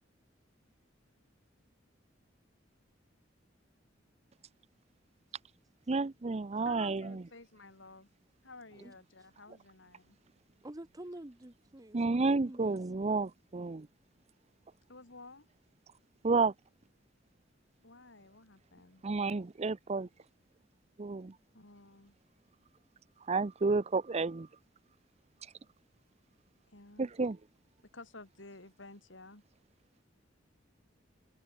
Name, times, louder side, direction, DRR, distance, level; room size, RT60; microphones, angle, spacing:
voice 1, 5.9-7.2 11.9-13.9 16.2-16.5 19.0-20.1 21.0-21.3 23.3-24.5 27.0-27.4, right 3 dB, 35° right, 0.6 m, -31 dB
voice 2, 6.6-8.1 8.4-10.2 14.9-15.5 17.8-19.0 21.5-22.1 26.7-27.1 27.8-29.4, left 3 dB, 80° left, 4.3 m, -52 dB
voice 3, 10.6-12.8, right 1 dB, 20° right, 1.1 m, -48 dB
open air
head